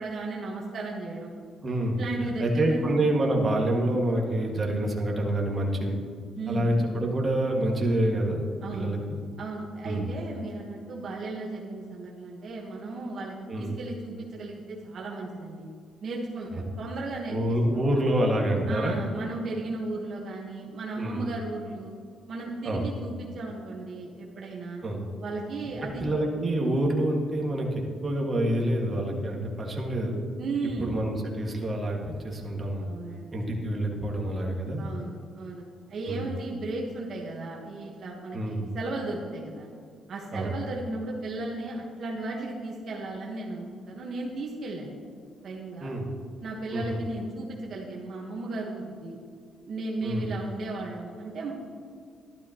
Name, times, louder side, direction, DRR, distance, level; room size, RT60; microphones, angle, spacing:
voice 1, 0.0-1.3 2.0-2.9 6.3-6.7 8.6-8.9 9.4-15.7 16.0-17.4 18.7-21.9 22.3-24.8 25.2-26.0 30.4-31.0 32.8-33.4 34.8-35.6 35.9-39.7 40.1-44.9 45.4-45.9 46.4-49.2 49.7-51.5, right 2 dB, 60° right, -2 dB, 1.4 m, -35 dB
voice 2, 1.6-6.0 6.5-8.5 8.7-9.2 9.8-10.1 13.5-13.7 17.3-19.0 21.0-21.3 22.6-22.9 24.8-25.0 25.8-30.2 30.8-32.9 33.3-34.9 36.1-36.3 38.3-38.7 40.3-40.5 45.8-46.1 46.7-47.0 50.0-50.3, right 1 dB, 35° right, -1 dB, 1.9 m, -27 dB
12.5 x 12.0 x 3.0 m, 2.1 s
cardioid pair, 90°, 0 cm